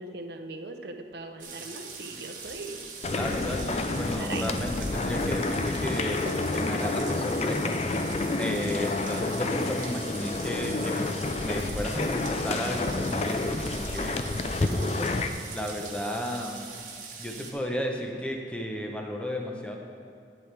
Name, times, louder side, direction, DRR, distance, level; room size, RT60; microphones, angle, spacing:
voice 1, 0.0-2.8 4.2-4.4, right 3 dB, 65° right, 6 dB, 0.7 m, -39 dB
sound 1, 1.4-17.5, right 5 dB, 45° right, 1.2 m, -42 dB
sound 2, 3.0-15.3, left 2 dB, 35° left, 0.4 m, -29 dB
voice 2, 3.1-7.8 8.4-11.1 11.4-14.2 14.6-15.1 15.5-16.6 17.2-19.8, equal, 5° left, 1 dB, 0.8 m, -34 dB
11.0 x 9.4 x 3.4 m, 2.5 s
head